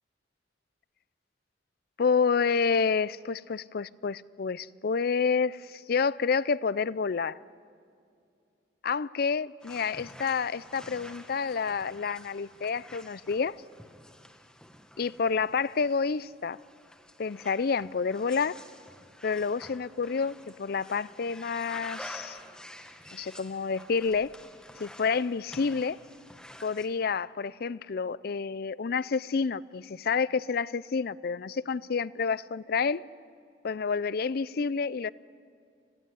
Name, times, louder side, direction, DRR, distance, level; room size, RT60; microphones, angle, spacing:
voice 1, 2.0-7.4 8.8-13.6 15.0-16.6 17.2-18.6 19.2-22.4 23.1-24.3 24.8-26.0 26.6-33.0 33.6-35.1, left 5 dB, 60° left, 0.5 m, -29 dB
sound 1, 9.6-26.9, left 1 dB, 5° left, 1.4 m, -49 dB
26.0 x 16.5 x 9.9 m
head